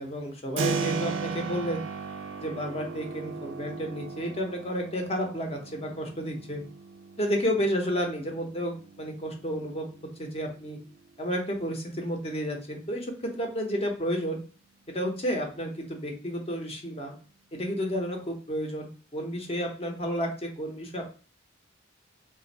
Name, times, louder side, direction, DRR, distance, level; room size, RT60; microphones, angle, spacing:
voice 1, 0.0-1.8 2.4-6.6 7.2-9.9 10.2-10.8 11.2-14.4 14.9-17.2 17.5-21.1, equal, 30° left, 2 dB, 0.7 m, -31 dB
Keyboard (musical), 0.6-11.2, right 5 dB, 70° right, 0.4 m, -37 dB
2.5 x 2.4 x 4.0 m, 0.38 s
head